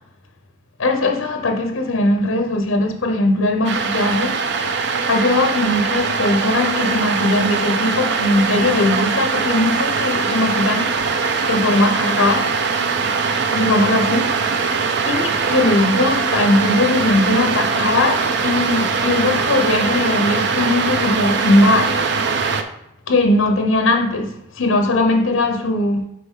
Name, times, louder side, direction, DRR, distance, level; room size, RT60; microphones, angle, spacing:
voice 1, 0.8-4.8 5.1-11.2 11.5-12.5 13.5-22.4 23.1-26.1, left 2 dB, 70° left, 0.9 m, -19 dB
sound 1, 3.6-22.6, right 5 dB, 60° right, 0.6 m, -21 dB
6.7 x 4.5 x 3.7 m
head